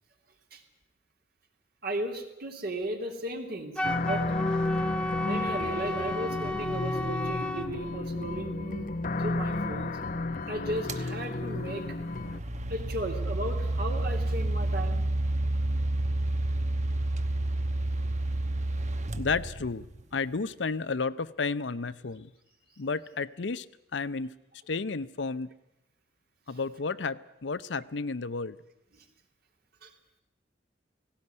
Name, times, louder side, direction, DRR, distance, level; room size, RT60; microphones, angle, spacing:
voice 1, 1.8-4.3 5.2-8.9 9.2-10.0 10.5-11.9 12.7-15.0 26.5-26.6 28.9-29.0 29.8-29.9, right 1 dB, 60° right, 3 dB, 3.0 m, -35 dB
sound 1, 3.8-12.4, left 2 dB, 50° left, 0.8 m, -32 dB
Wind instrument woodwind instrument, 3.8-7.7, left 1 dB, 5° left, 0.8 m, -32 dB
sound 2, 10.9-11.1 12.0-20.0, right 1 dB, 40° right, 1.1 m, -30 dB
voice 2, 19.1-19.9 20.1-22.3 22.8-23.7 23.9-24.3 24.7-25.5 26.5-28.6, left 4 dB, 75° left, 15 dB, 0.7 m, -32 dB
17.5 x 17.0 x 9.6 m, 0.87 s
head